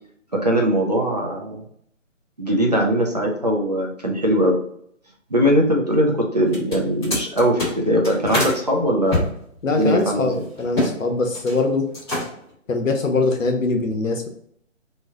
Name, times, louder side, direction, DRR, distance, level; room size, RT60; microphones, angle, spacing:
voice 1, 0.3-1.6 2.4-4.6 5.3-9.3 9.7-10.4, equal, 35° right, -1 dB, 0.5 m, -20 dB
sound 1, 6.4-8.6 9.1-10.9 11.2-11.6 11.9-12.5, left 2 dB, 20° left, 1.3 m, -26 dB
voice 2, 9.6-11.9 12.7-14.3, left 3 dB, 85° left, 3 dB, 1.0 m, -22 dB
3.1 x 2.2 x 3.6 m, 0.68 s
hypercardioid pair, 165°, 38 cm